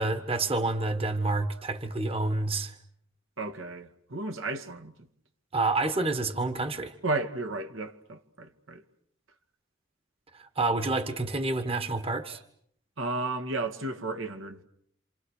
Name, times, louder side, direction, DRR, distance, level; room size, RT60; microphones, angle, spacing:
voice 1, 0.0-2.7 5.5-6.9 10.3-12.4, right 2 dB, 30° right, 1.5 m, -28 dB
voice 2, 3.4-5.1 7.0-8.8 13.0-14.6, right 2 dB, 75° right, 2.2 m, -33 dB
28.0 x 28.0 x 6.6 m
head